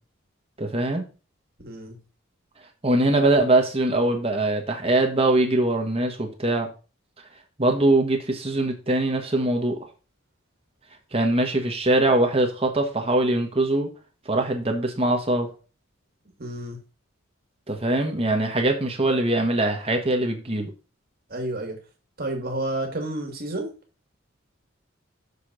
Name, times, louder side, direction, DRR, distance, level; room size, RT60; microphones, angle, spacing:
voice 1, 0.6-1.0 2.8-6.7 7.6-9.8 11.1-13.9 14.2-15.5 17.7-20.7, right 2 dB, 30° right, 3 dB, 1.3 m, -22 dB
voice 2, 1.6-2.0 16.4-16.8 21.3-21.8 22.2-23.7, right 1 dB, 50° right, 2 dB, 2.3 m, -30 dB
6.9 x 4.1 x 6.3 m, 0.34 s
head